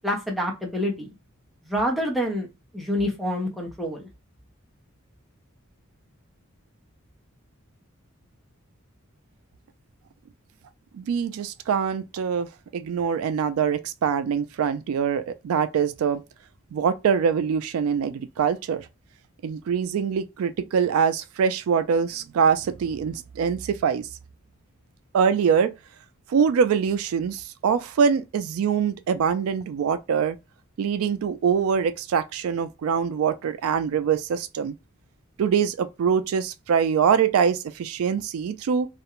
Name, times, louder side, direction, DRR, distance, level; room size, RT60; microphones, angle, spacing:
voice 1, 0.0-1.1 1.6-2.5 2.7-4.1, equal, ahead, 0.6 m, -27 dB
voice 2, 10.9-16.2 16.7-18.9 19.4-24.1 25.1-25.7 26.3-30.4 30.8-34.8 35.4-38.9, right 7 dB, 75° right, 0.3 m, -24 dB
2.4 x 2.1 x 2.9 m
head